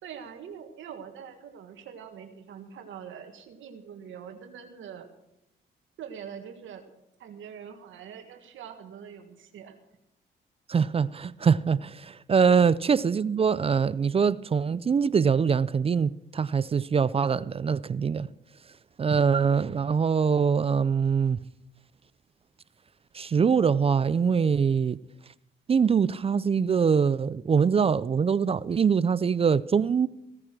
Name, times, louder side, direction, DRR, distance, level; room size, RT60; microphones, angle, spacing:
voice 1, 0.0-5.1 6.0-6.8 7.2-9.7, right 8 dB, 75° right, 1.7 m, -43 dB
voice 2, 10.7-18.3 19.0-21.4 23.1-25.0 25.7-30.1, right 6 dB, 30° right, 0.4 m, -23 dB
16.5 x 9.7 x 6.0 m
cardioid pair, 90°, 20 cm